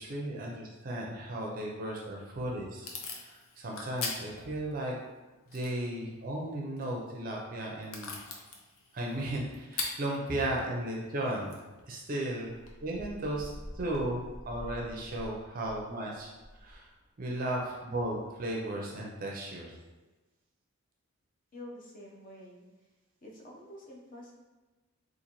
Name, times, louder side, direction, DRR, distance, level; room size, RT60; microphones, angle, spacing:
voice 1, 0.0-2.9 3.1-5.0 5.5-8.1 8.9-11.6 11.9-14.2 14.5-16.3 16.6-16.9 17.2-19.7, right 1 dB, 40° right, -2 dB, 0.5 m, -35 dB
Packing tape duct tape / Tearing, 1.9-12.7, left 3 dB, 80° left, 0.6 m, -44 dB
sound 1, 12.5-15.9 16.2-17.4 17.7-18.2, equal, ahead, 0.8 m, -47 dB
voice 2, 21.5-22.6 23.2-24.3, left 1 dB, 40° left, -3 dB, 0.7 m, -48 dB
3.9 x 2.5 x 2.9 m, 1.2 s
head